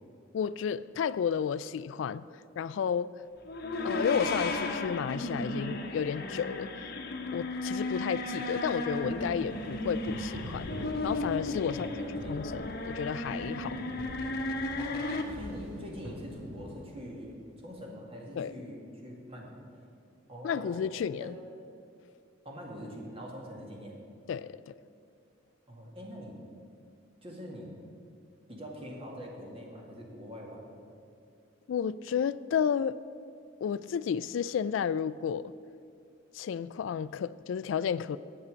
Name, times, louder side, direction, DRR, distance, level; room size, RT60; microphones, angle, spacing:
voice 1, 0.3-2.3 2.6-3.1 3.8-6.7 7.3-10.7 11.0-11.9 12.3-13.8 18.4-18.5 20.4-21.4 24.3-24.7 31.7-33.0 33.6-35.5 36.3-38.2, left 7 dB, 75° left, 16 dB, 0.3 m, -32 dB
sound 1, 3.4-15.2, left 2 dB, 50° left, 1.0 m, -35 dB
sound 2, 8.9-17.7, equal, 85° right, 2.3 m, -44 dB
voice 2, 11.6-12.4 14.7-19.6 20.3-20.8 21.2-21.4 22.4-24.0 25.7-26.4 27.2-27.7 28.5-30.7, equal, 30° right, -1 dB, 2.0 m, -44 dB
8.4 x 8.1 x 8.7 m, 2.4 s
head